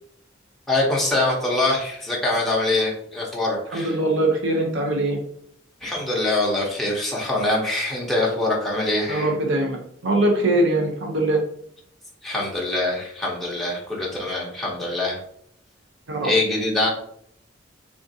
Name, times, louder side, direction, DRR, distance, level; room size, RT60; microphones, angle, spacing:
voice 1, 0.7-3.9 5.8-9.3 12.2-15.2 16.2-16.9, left 2 dB, ahead, -4 dB, 0.7 m, -24 dB
voice 2, 3.7-5.2 9.1-11.4 16.1-16.3, right 1 dB, 75° right, 1 dB, 0.6 m, -22 dB
3.5 x 2.5 x 2.6 m, 0.63 s
head